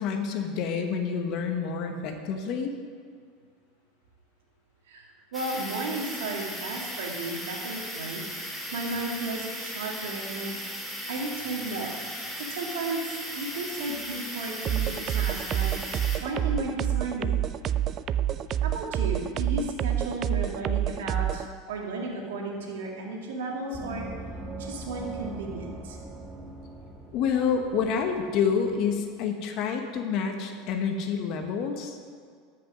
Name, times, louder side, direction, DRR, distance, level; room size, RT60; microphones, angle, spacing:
voice 1, 0.0-2.7 27.1-32.0, left 6 dB, 55° left, 5 dB, 1.1 m, -28 dB
sound 1, 5.3-16.2, equal, ahead, 2.6 m, -37 dB
voice 2, 5.3-11.9 12.5-15.7 16.2-17.3 18.6-24.1 24.6-26.0, right 2 dB, 90° right, 0 dB, 2.2 m, -34 dB
sound 2, 14.6-21.5, right 11 dB, 40° right, 0.3 m, -28 dB
Gong, 23.7-29.0, right 3 dB, 25° right, 1.7 m, -41 dB
13.5 x 6.1 x 6.2 m, 2.1 s
supercardioid pair, 120°, 0 cm